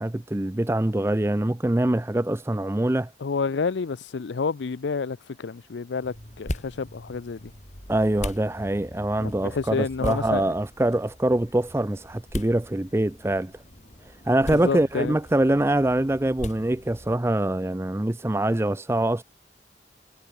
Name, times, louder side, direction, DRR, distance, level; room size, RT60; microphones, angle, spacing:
voice 1, 0.0-3.1 7.9-13.5 14.3-19.2, right 1 dB, 15° right, 0.5 m, -24 dB
voice 2, 3.2-7.5 9.2-10.5 14.5-15.1, left 5 dB, 85° left, 0.5 m, -29 dB
sound 1, 6.0-17.1, left 1 dB, 40° left, 5.0 m, -39 dB
head